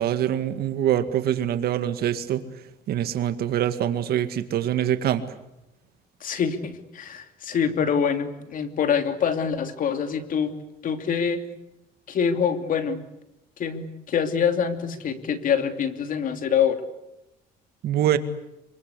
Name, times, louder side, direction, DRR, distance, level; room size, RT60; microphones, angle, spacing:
voice 1, 0.0-2.4 2.9-5.2 17.8-18.2, right 11 dB, 65° right, 10 dB, 2.1 m, -24 dB
voice 2, 6.2-10.5 10.8-11.4 12.1-13.0 13.6-16.8, left 7 dB, 55° left, 8 dB, 2.9 m, -25 dB
26.0 x 24.5 x 8.4 m, 0.88 s
cardioid pair, 110°, 17 cm